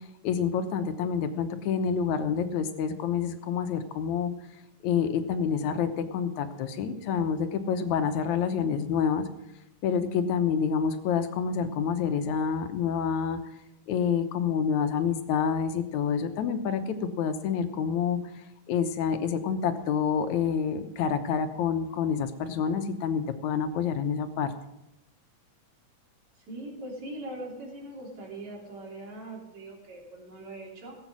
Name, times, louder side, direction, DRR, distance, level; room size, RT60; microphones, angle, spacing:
voice 1, 0.2-4.3 4.8-9.3 9.8-13.4 13.9-18.2 18.7-24.5, left 7 dB, 80° left, 8 dB, 2.3 m, -28 dB
voice 2, 26.5-31.0, right 1 dB, 70° right, -1 dB, 4.6 m, -41 dB
17.5 x 8.2 x 6.1 m, 0.87 s
omnidirectional pair, 3.4 m